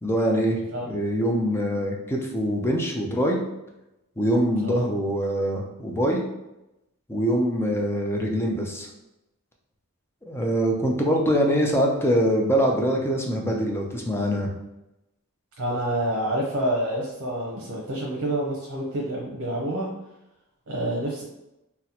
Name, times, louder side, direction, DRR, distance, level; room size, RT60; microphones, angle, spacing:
voice 1, 0.0-0.6 0.8-3.4 4.2-6.2 7.1-8.9 10.3-14.5, equal, 10° left, 0 dB, 0.4 m, -24 dB
voice 2, 15.6-19.9 20.7-21.2, right 1 dB, 75° right, -2 dB, 0.7 m, -28 dB
4.0 x 2.1 x 2.8 m, 0.91 s
head